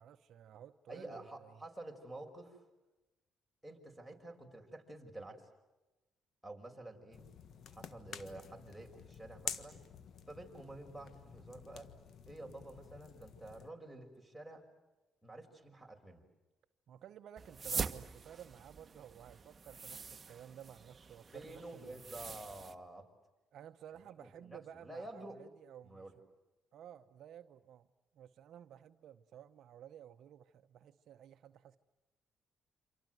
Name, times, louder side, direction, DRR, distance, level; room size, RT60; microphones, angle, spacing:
voice 1, 0.0-1.6 16.9-22.1 23.5-26.1 26.7-27.9 28.1-31.8, right 10 dB, 70° right, 10 dB, 0.9 m, -54 dB
voice 2, 0.9-2.6 3.6-5.5 6.4-7.2 7.7-9.8 10.3-11.9 12.3-14.6 15.2-16.2 21.3-23.1 24.2-25.4 25.8-26.1, right 1 dB, ahead, 1 dB, 5.8 m, -50 dB
sound 1, 7.1-13.7, left 7 dB, 60° left, 1.5 m, -49 dB
sound 2, 17.4-22.7, right 5 dB, 35° right, 1.3 m, -44 dB
28.5 x 26.0 x 7.9 m, 1.1 s
supercardioid pair, 75°, 0 cm